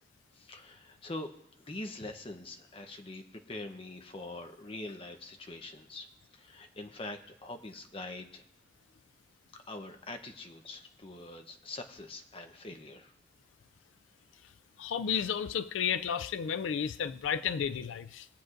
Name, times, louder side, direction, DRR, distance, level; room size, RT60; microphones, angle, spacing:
voice 1, 0.3-1.3 1.6-6.1 6.3-8.4 9.6-13.1, left 2 dB, 30° left, 5 dB, 0.8 m, -44 dB
voice 2, 14.8-18.3, left 7 dB, 80° left, 13 dB, 0.4 m, -32 dB
21.0 x 7.9 x 2.5 m, 0.81 s
head